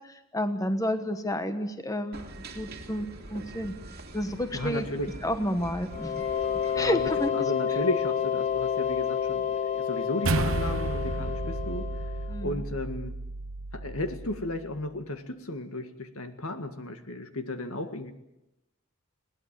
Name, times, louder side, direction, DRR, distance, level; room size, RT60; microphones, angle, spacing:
voice 1, 0.0-3.7 4.1-4.9 5.2-6.3 6.7-7.5 12.3-12.6, left 1 dB, 15° left, 8 dB, 1.2 m, -30 dB
sound 1, 2.1-7.3, right 1 dB, 50° right, 2.6 m, -43 dB
voice 2, 4.5-5.1 6.7-11.9 12.4-13.2 13.7-18.1, left 2 dB, 80° left, 8 dB, 1.9 m, -34 dB
sound 2, 5.9-12.5, left 8 dB, 35° left, 0.8 m, -30 dB
sound 3, 10.2-14.8, right 3 dB, 70° right, 1.0 m, -32 dB
21.5 x 18.5 x 7.7 m, 0.90 s
head